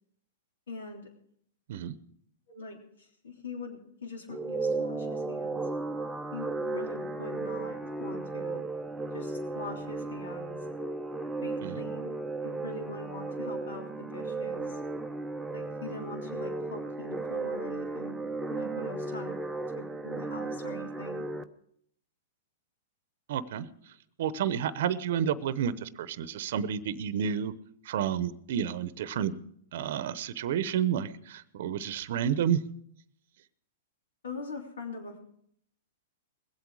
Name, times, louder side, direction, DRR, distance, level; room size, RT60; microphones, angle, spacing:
voice 1, 0.7-1.1 2.5-2.8 3.2-5.6 6.3-8.6 9.1-10.6 11.4-12.1 12.4-14.7 15.5-18.2 18.5-19.4 19.7-21.3 34.2-35.2, left 2 dB, 85° left, 2 dB, 3.2 m, -42 dB
sound 1, 4.3-21.4, right 3 dB, 5° right, 0.7 m, -35 dB
voice 2, 23.3-23.7 24.2-27.5 27.8-29.3 29.7-32.6, right 9 dB, 65° right, 15 dB, 0.8 m, -30 dB
21.0 x 8.2 x 4.8 m, 0.67 s
hypercardioid pair, 140°, 0 cm